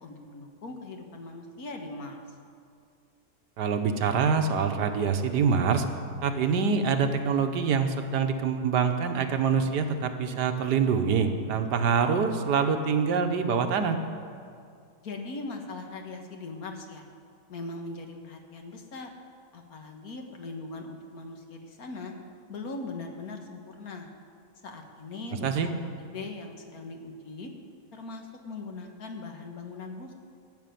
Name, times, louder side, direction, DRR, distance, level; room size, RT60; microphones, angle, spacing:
voice 1, 0.0-2.2 15.0-17.0 17.5-19.1 19.5-22.1 22.5-24.1 24.6-25.7 26.0-27.5 27.9-30.1, left 3 dB, 60° left, 3 dB, 1.7 m, -40 dB
voice 2, 3.6-5.8 6.2-14.0 25.4-25.7, right 6 dB, 80° right, 7 dB, 1.5 m, -25 dB
14.5 x 6.7 x 9.2 m, 2.3 s
omnidirectional pair, 1.8 m